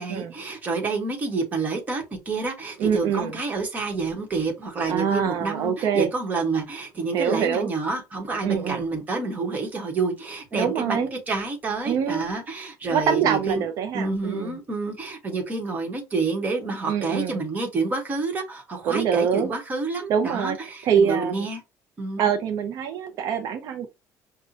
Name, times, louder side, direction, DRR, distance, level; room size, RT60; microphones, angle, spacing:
voice 1, 0.0-13.6 13.9-21.6 22.0-22.3, right 3 dB, 25° right, 1.1 m, -28 dB
voice 2, 2.8-3.4 4.9-6.1 7.1-7.7 8.4-8.8 10.5-11.1 11.8-12.3 12.9-14.6 16.8-17.4 18.8-19.5 20.1-21.5 22.2-23.9, right 7 dB, 60° right, 0.5 m, -25 dB
5.4 x 2.2 x 2.7 m
cardioid pair, 160°, 7 cm